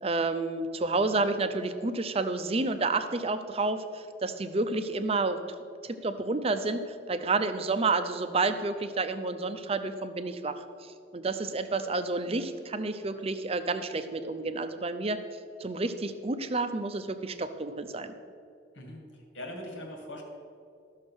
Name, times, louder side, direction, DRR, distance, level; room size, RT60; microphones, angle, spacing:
voice 1, 0.0-5.6 5.8-15.2 15.6-18.1, right 3 dB, 30° right, 9 dB, 0.6 m, -30 dB
voice 2, 18.7-20.2, left 1 dB, 80° left, 2 dB, 2.2 m, -41 dB
13.5 x 6.5 x 6.3 m, 2.4 s
head